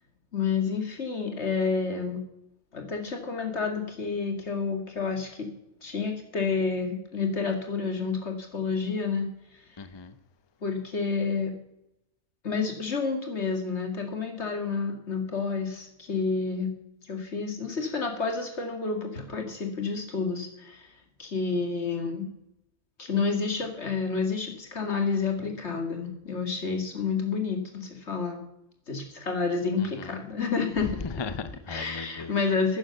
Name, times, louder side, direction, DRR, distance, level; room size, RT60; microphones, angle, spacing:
voice 1, 0.3-2.2 2.7-5.5 5.8-9.3 10.6-11.5 12.4-16.7 17.0-20.9 21.2-22.3 23.0-28.4 28.9-30.9 31.7-32.8, left 5 dB, 70° left, 2.5 m, -29 dB
voice 2, 9.8-10.1 29.8-30.1 31.0-32.3, left 4 dB, 30° left, 0.6 m, -37 dB
11.0 x 9.7 x 6.7 m
omnidirectional pair, 1.2 m